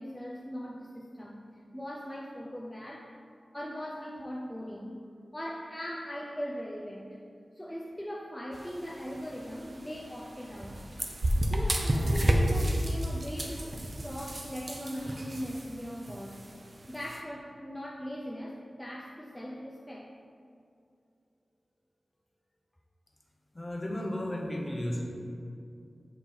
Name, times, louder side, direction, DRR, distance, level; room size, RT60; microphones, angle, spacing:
voice 1, 0.0-3.2 3.5-5.0 5.3-7.2 7.5-10.8 11.5-16.4 16.9-20.1, equal, 10° left, -3 dB, 0.5 m, -40 dB
sound 1, 8.5-17.2, right 1 dB, 35° right, 0.6 m, -32 dB
voice 2, 23.5-25.0, left 1 dB, 25° left, -1 dB, 0.9 m, -33 dB
7.5 x 3.6 x 4.4 m, 2.5 s
wide cardioid pair, 100°, 0 cm